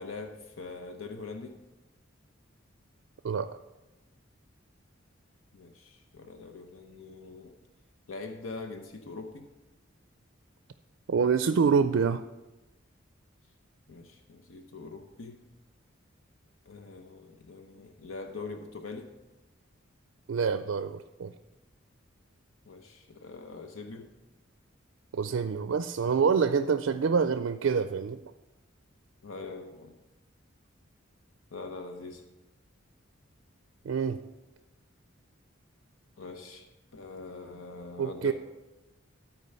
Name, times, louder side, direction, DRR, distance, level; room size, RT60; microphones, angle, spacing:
voice 1, 0.0-1.6 5.5-7.5 8.1-9.5 13.9-15.4 16.7-19.1 22.7-24.1 29.2-29.9 31.5-32.2 36.2-36.7 36.9-38.3, left 3 dB, 90° left, 6 dB, 0.8 m, -43 dB
voice 2, 11.1-12.2 20.3-21.3 25.1-28.2 33.8-34.2 38.0-38.3, right 6 dB, 80° right, 10 dB, 0.4 m, -26 dB
13.0 x 4.6 x 5.6 m, 1.0 s
head